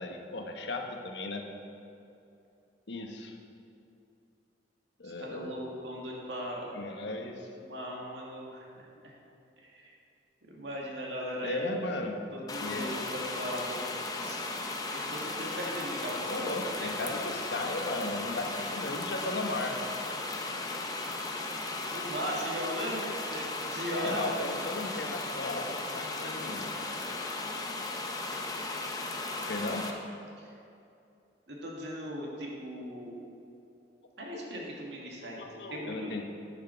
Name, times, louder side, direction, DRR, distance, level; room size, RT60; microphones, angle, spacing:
voice 1, 0.0-1.4 2.9-3.4 5.0-5.6 6.7-7.5 11.4-12.2 12.6-12.9 16.2-19.8 23.9-26.9 29.5-29.9 34.3-34.5 35.2-36.2, left 2 dB, 75° left, 3 dB, 1.0 m, -36 dB
voice 2, 5.0-6.8 7.6-8.7 9.6-9.9 10.4-11.6 12.3-13.8 14.2-14.4 14.9-17.2 21.9-24.3 30.4-30.5 31.5-33.1 34.2-35.4 35.7-36.1, equal, 75° right, -2 dB, 2.0 m, -38 dB
sound 1, 12.5-29.9, left 2 dB, 20° left, 0.7 m, -36 dB
10.0 x 6.1 x 5.6 m, 2.6 s
head